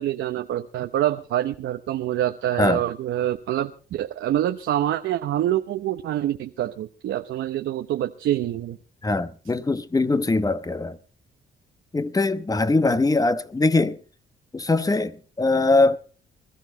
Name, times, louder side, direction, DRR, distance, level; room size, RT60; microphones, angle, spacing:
voice 1, 0.0-8.8, right 12 dB, 75° right, 0.8 m, -26 dB
voice 2, 9.0-11.0 11.9-14.0 14.5-16.0, left 2 dB, 20° left, 1.0 m, -22 dB
21.5 x 13.5 x 4.0 m
cardioid pair, 90°, 20 cm